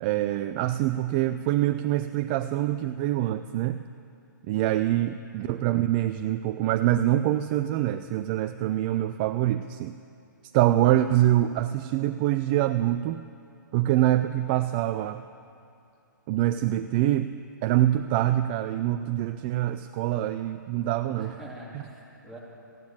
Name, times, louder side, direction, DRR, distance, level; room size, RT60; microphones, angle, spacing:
voice 1, 0.0-3.8 4.5-9.9 10.5-13.2 13.7-15.2 16.3-17.3 17.6-21.4, right 13 dB, 30° right, 11 dB, 0.4 m, -25 dB
voice 2, 21.1-22.4, right 1 dB, ahead, -6 dB, 3.4 m, -45 dB
15.0 x 9.3 x 8.9 m, 2.6 s
figure-of-eight pair, 130°, 11 cm